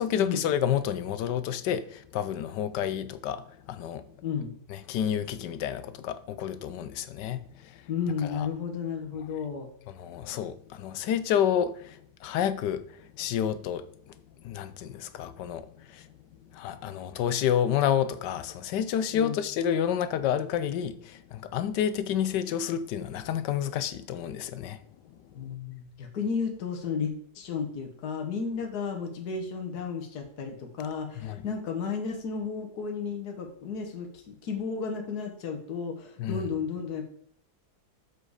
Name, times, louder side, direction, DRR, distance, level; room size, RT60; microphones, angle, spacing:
voice 1, 0.0-4.1 4.7-7.9 8.2-8.5 9.9-16.1 16.5-25.3 31.2-31.5 36.2-36.5, left 9 dB, 85° left, 1.4 m, -30 dB
voice 2, 4.2-4.5 7.9-9.7 19.1-19.4 25.3-37.0, left 6 dB, 65° left, 1.8 m, -33 dB
7.7 x 6.5 x 4.8 m
omnidirectional pair, 1.8 m